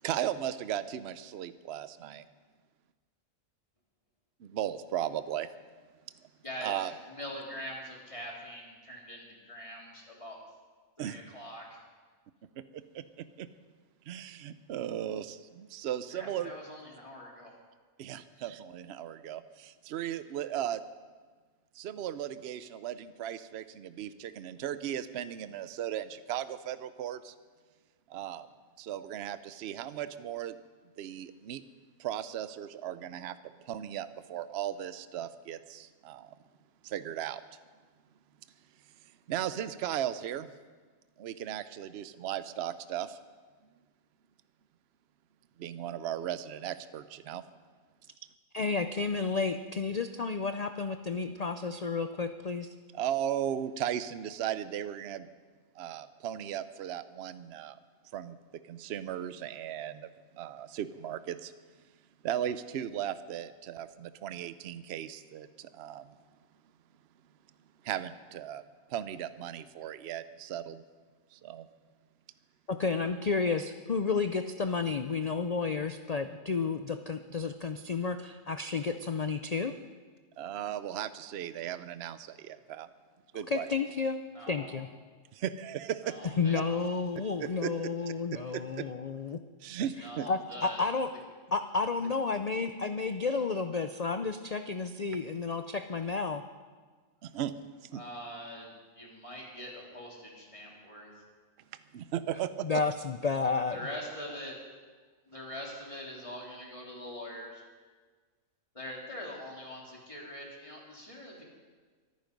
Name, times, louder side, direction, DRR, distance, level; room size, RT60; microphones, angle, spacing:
voice 1, 0.0-2.2 4.4-5.5 6.6-6.9 11.0-11.2 12.6-13.5 14.1-16.5 18.0-20.8 21.7-27.3 28.1-28.5 28.8-30.6 31.0-31.6 32.0-33.4 33.6-36.3 36.8-37.4 39.3-40.5 41.2-43.2 45.6-47.4 52.9-55.3 55.8-57.8 58.1-58.4 58.6-61.5 62.2-66.2 67.8-68.6 68.9-70.8 71.3-71.7 80.4-82.9 83.3-83.7 85.3-86.3 87.4-87.9 88.3-88.9 89.6-90.3 97.2-97.5 97.8-98.0 101.9-102.8, right 10 dB, 60° right, 13 dB, 0.8 m, -36 dB
voice 2, 6.4-10.4 11.0-11.8 16.1-17.5 18.3-18.4 84.3-84.9 86.0-87.0 90.0-90.9 97.9-101.2 103.7-104.5 105.3-107.6 108.7-111.4, equal, 20° left, -2 dB, 3.2 m, -43 dB
voice 3, 48.5-52.7 72.7-79.7 83.3-84.2 84.5-84.9 86.4-89.4 90.3-91.1 91.5-96.4 102.6-103.8, left 4 dB, 75° left, 9 dB, 0.3 m, -31 dB
24.0 x 9.5 x 5.2 m, 1.5 s
omnidirectional pair, 1.5 m